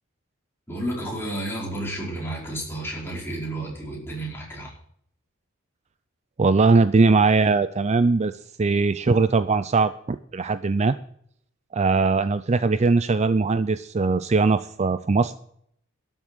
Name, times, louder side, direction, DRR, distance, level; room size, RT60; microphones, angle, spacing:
voice 1, 0.7-4.7, right 1 dB, 10° left, -3 dB, 5.0 m, -31 dB
voice 2, 6.4-8.3 8.6-11.0 11.7-15.4, right 4 dB, 30° right, 12 dB, 0.4 m, -20 dB
12.5 x 7.4 x 8.6 m, 0.67 s
head